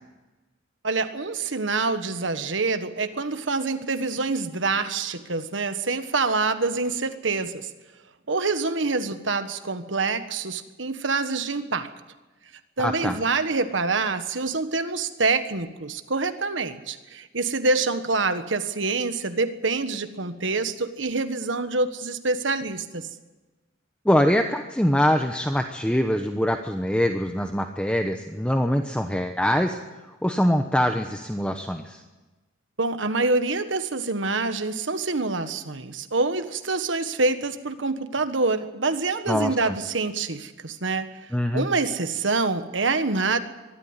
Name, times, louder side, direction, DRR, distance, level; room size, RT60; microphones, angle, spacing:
voice 1, 0.8-7.7 8.3-11.9 12.8-23.1 32.8-41.1 41.5-43.4, right 3 dB, 75° right, 9 dB, 1.5 m, -26 dB
voice 2, 12.8-13.2 24.0-29.8 30.2-32.0 39.3-39.8 41.3-41.7, equal, 5° left, 5 dB, 0.9 m, -23 dB
23.5 x 13.0 x 9.9 m, 1.2 s
head